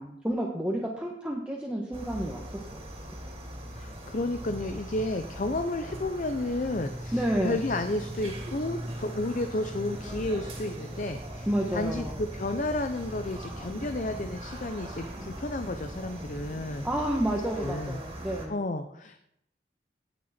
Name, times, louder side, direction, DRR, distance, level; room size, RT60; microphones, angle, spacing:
voice 1, 0.0-2.8 7.1-7.6 11.5-12.2 16.8-18.6, right 1 dB, 5° right, -2 dB, 1.2 m, -30 dB
sound 1, 1.9-18.5, equal, 35° right, 2.6 m, -40 dB
voice 2, 3.7-11.5 11.7-16.9 17.6-18.0 18.5-19.2, left 2 dB, 45° left, 7 dB, 0.7 m, -32 dB
17.5 x 6.6 x 4.3 m, 0.75 s
head